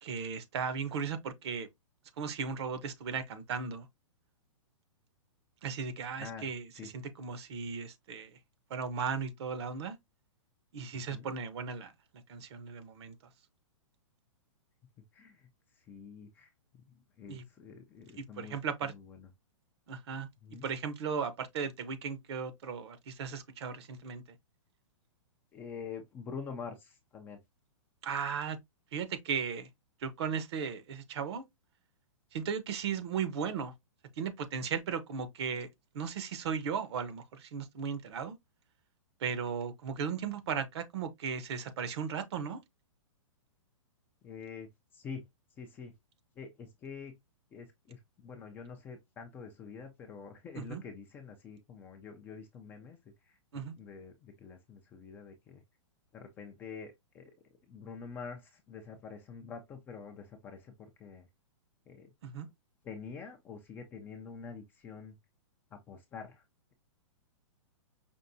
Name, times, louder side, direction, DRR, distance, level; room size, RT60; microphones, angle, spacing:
voice 1, 0.0-1.7 2.2-3.9 5.6-8.3 8.7-10.0 10.7-11.9 12.3-13.1 17.3-17.4 18.2-18.9 19.9-20.3 20.6-24.2 28.0-28.6 28.9-29.7 30.0-31.4 32.3-33.7 34.2-35.7 35.9-38.4 39.2-42.6 50.5-50.8 53.5-53.7 62.2-62.5, right 6 dB, 55° right, 0.8 m, -36 dB
voice 2, 15.1-15.5 15.7-19.3 20.4-20.7 25.5-27.4 44.2-45.3 45.6-45.9 46.4-47.2 47.5-53.0 53.3-55.6 56.1-57.3 57.7-61.3 61.9-62.1 62.8-65.1 65.7-66.4, left 5 dB, 10° left, 0.3 m, -46 dB
5.4 x 2.5 x 2.6 m
hypercardioid pair, 155°, 17 cm